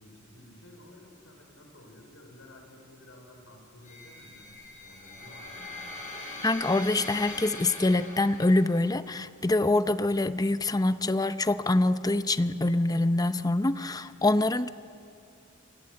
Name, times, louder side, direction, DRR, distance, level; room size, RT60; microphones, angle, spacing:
voice 1, 0.0-5.8, left 1 dB, 80° left, 2 dB, 5.1 m, -53 dB
sound 1, 3.8-8.9, left 2 dB, 35° left, 4.7 m, -42 dB
voice 2, 6.4-14.7, left 2 dB, 15° left, 12 dB, 0.6 m, -25 dB
29.0 x 19.5 x 7.7 m, 2.5 s
head